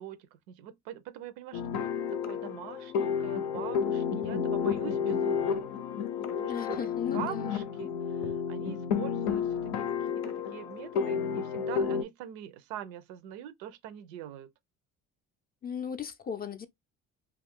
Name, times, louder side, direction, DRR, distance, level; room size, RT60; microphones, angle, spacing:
voice 1, 0.0-5.7 6.3-14.5, right 10 dB, 80° right, 0.5 m, -43 dB
sound 1, 1.5-12.0, left 7 dB, 80° left, 0.6 m, -31 dB
voice 2, 6.5-7.6 15.6-16.7, left 7 dB, 25° left, 0.4 m, -37 dB
2.4 x 2.3 x 3.4 m
supercardioid pair, 75°, 37 cm